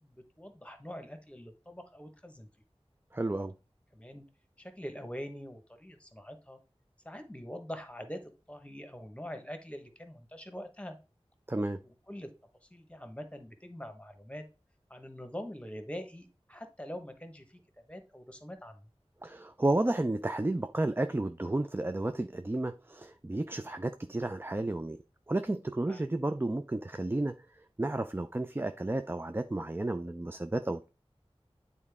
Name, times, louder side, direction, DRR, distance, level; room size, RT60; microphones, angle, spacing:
voice 1, 0.0-2.5 3.9-4.2 4.6-6.6 7.0-8.2 8.5-11.0 12.1-12.3 12.6-14.4 14.9-17.6 17.9-18.8 25.9-26.0, equal, 10° left, 1.2 m, -44 dB
voice 2, 3.1-3.5 11.5-11.8 19.2-25.0 25.3-27.3 27.8-30.9, right 2 dB, 20° right, 0.4 m, -32 dB
8.7 x 4.1 x 3.6 m
wide cardioid pair, 50°, 11 cm